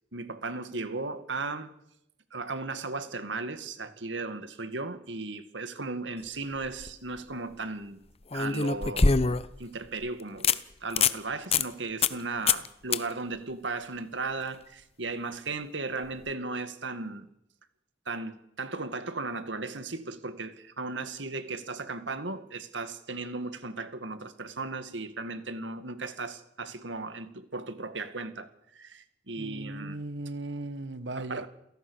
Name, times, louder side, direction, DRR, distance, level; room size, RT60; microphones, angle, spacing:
voice 1, 0.1-1.7 2.3-8.0 8.3-9.2 9.6-17.3 18.1-30.0 31.1-31.5, right 3 dB, 90° right, 2.1 m, -36 dB
sound 1, 6.6-6.9 8.3-9.6 10.0-10.1 10.4-10.6 10.9-11.2 11.5-11.7 12.0-12.2 12.5-12.7 12.9-13.0 16.1-16.2, left 4 dB, 35° left, 0.8 m, -24 dB
voice 2, 29.4-31.4, right 2 dB, 75° right, 1.4 m, -37 dB
29.0 x 17.0 x 6.5 m
head